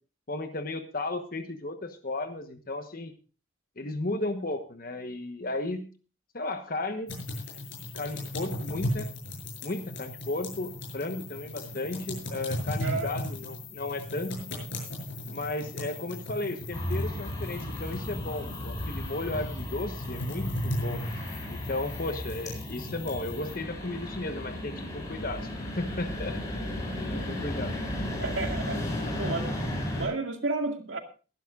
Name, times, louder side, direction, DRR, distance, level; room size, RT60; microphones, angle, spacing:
voice 1, 0.3-3.1 3.8-5.9 6.3-7.1 7.9-9.1 9.6-14.5 15.3-21.0 21.5-26.4 27.0-27.7, left 2 dB, 45° left, 7 dB, 1.2 m, -34 dB
sound 1, 7.1-23.5, left 1 dB, 80° left, 7.1 m, -37 dB
sound 2, 16.7-30.1, left 1 dB, 20° left, 8.0 m, -35 dB
voice 2, 28.2-28.8 29.2-29.5 30.0-31.0, right 3 dB, 75° right, 4 dB, 2.1 m, -31 dB
22.0 x 11.5 x 2.5 m, 0.35 s
head